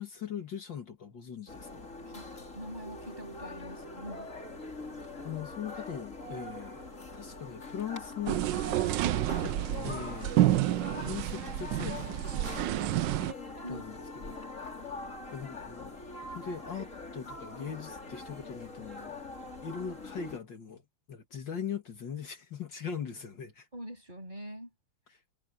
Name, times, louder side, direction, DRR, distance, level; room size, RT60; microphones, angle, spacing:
voice 1, 0.0-2.0 4.8-4.9 5.2-8.4 9.3-9.6 9.8-10.7 10.9-13.3 13.7-13.9 14.2-14.4 15.3-16.0 16.2-19.2 19.6-20.8 21.1-23.7, left 7 dB, 65° left, 2.7 m, -40 dB
sound 1, 1.5-20.4, left 2 dB, 35° left, 4.0 m, -43 dB
voice 2, 2.5-4.3 13.6-13.9 23.7-24.7, equal, 20° right, 8.1 m, -44 dB
sound 2, 8.3-13.3, right 14 dB, 75° right, 1.2 m, -29 dB
omnidirectional pair, 2.2 m